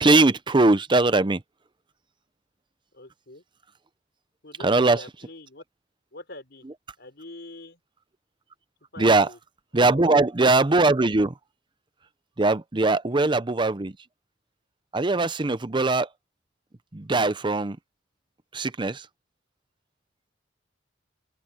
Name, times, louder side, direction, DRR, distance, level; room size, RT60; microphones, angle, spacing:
voice 1, 0.0-1.4 4.6-5.0 9.0-9.3 9.7-11.3 12.4-13.9 14.9-16.1 16.9-17.8 18.5-19.0, right 3 dB, 25° right, 0.6 m, -20 dB
voice 2, 2.9-3.4 4.4-5.6 6.1-7.8 8.9-9.4 9.7-10.2 13.0-13.2, left 2 dB, 55° left, 5.3 m, -44 dB
open air
head